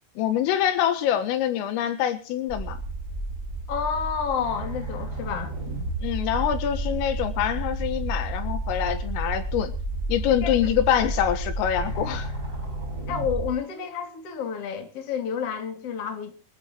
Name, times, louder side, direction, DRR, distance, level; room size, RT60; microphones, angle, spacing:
voice 1, 0.2-2.8 6.0-9.7 10.1-12.3, left 10 dB, 80° left, 4.0 m, -25 dB
sound 1, 2.5-13.5, right 2 dB, 15° right, 6.9 m, -31 dB
voice 2, 3.7-5.5 10.4-10.5 13.1-16.3, left 7 dB, 35° left, 2.9 m, -30 dB
25.0 x 13.5 x 3.1 m
omnidirectional pair, 5.9 m